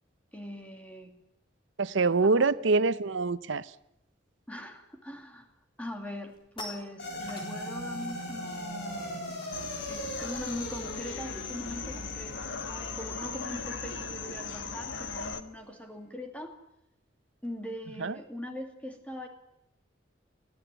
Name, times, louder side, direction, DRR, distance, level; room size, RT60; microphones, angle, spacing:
voice 1, 0.3-1.1 2.3-2.6 4.5-5.5 5.8-9.5 9.9-16.6 17.4-19.3, left 1 dB, 5° left, 4 dB, 2.3 m, -41 dB
voice 2, 1.8-3.7 18.0-18.1, right 4 dB, 85° right, 15 dB, 0.7 m, -25 dB
sound 1, 6.2-11.8 12.0-12.3 12.5-17.6, left 1 dB, 25° left, 3.9 m, -52 dB
sound 2, 7.0-15.5, equal, 60° left, 6.6 m, -41 dB
sound 3, 9.5-15.4, left 5 dB, 85° left, 1.3 m, -38 dB
23.0 x 15.0 x 9.0 m, 0.83 s
head